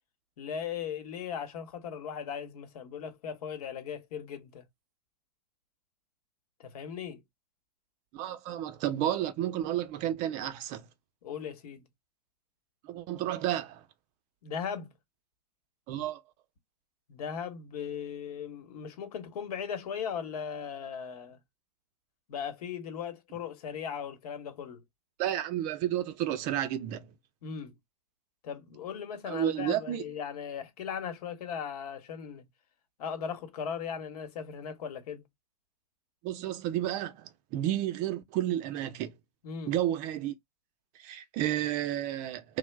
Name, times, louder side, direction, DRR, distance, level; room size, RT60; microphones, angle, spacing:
voice 1, 0.4-4.6 6.6-7.2 11.2-11.9 14.4-14.9 17.1-21.4 22.3-24.8 27.4-27.8 28.4-32.5 33.0-35.3 39.4-39.7, left 7 dB, 65° left, 1.0 m, -38 dB
voice 2, 8.1-10.9 12.8-13.8 15.9-16.2 25.2-27.1 29.3-30.0 36.2-39.1 39.7-40.3 41.0-42.6, right 12 dB, 35° right, 0.5 m, -31 dB
2.9 x 2.0 x 3.2 m
hypercardioid pair, 115°, 21 cm